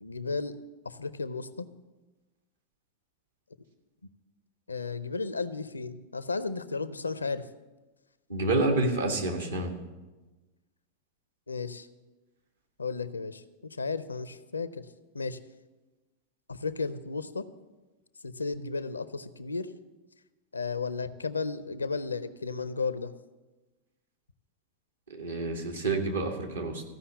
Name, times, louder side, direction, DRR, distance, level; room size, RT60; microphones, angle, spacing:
voice 1, 0.0-0.6 0.8-1.7 4.7-7.5 11.5-11.9 12.8-14.9 15.1-15.4 16.5-17.5 18.2-19.7 20.5-23.1, left 4 dB, 80° left, 15 dB, 0.5 m, -34 dB
voice 2, 8.3-9.8 25.1-26.8, right 2 dB, 75° right, 3 dB, 1.9 m, -28 dB
14.5 x 5.6 x 8.1 m, 1.2 s
figure-of-eight pair, 90°, 0 cm